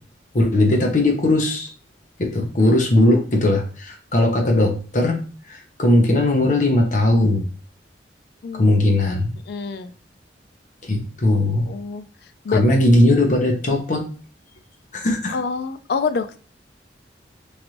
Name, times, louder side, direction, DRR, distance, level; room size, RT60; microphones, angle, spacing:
voice 1, 0.3-1.7 2.2-5.2 5.5-7.4 8.6-9.3 10.8-11.7 12.5-14.0 14.9-15.4, left 1 dB, 45° left, 2 dB, 0.8 m, -18 dB
voice 2, 8.4-8.8 9.5-9.9 11.6-12.0 12.4-12.6 15.3-16.4, left 5 dB, 65° left, 10 dB, 0.4 m, -26 dB
3.2 x 2.5 x 2.9 m, 0.39 s
head